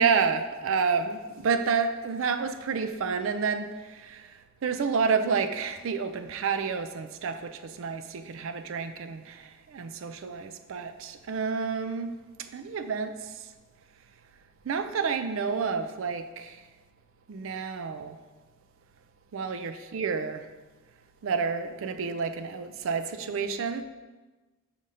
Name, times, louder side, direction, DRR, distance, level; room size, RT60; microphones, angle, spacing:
voice 1, 0.0-13.5 14.6-16.6 17.3-18.2 19.3-20.5 21.2-23.8, right 5 dB, 60° right, 8 dB, 0.4 m, -29 dB
5.2 x 3.7 x 5.5 m, 1.2 s
head